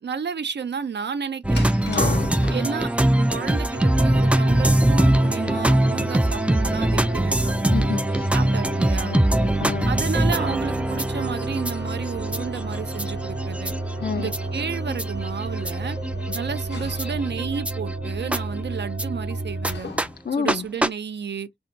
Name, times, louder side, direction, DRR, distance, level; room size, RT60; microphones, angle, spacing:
voice 1, 0.0-1.6 2.5-7.8 8.3-9.1 9.9-13.7 14.2-16.0 16.3-19.9 20.4-21.5, right 6 dB, 80° right, 0.4 m, -32 dB
sound 1, 1.4-19.0 19.6-19.7 20.0-20.1 20.5-20.6 20.8-20.9, right 1 dB, 5° right, 0.3 m, -23 dB
sound 2, 1.5-20.4, left 3 dB, 80° left, 0.9 m, -40 dB
voice 2, 1.9-2.2 7.7-8.3 9.0-9.9 14.0-14.3 20.3-20.6, left 7 dB, 65° left, 0.4 m, -30 dB
sound 3, 3.7-19.8, right 2 dB, 55° right, 0.8 m, -32 dB
2.6 x 2.2 x 3.8 m
wide cardioid pair, 40°, 18 cm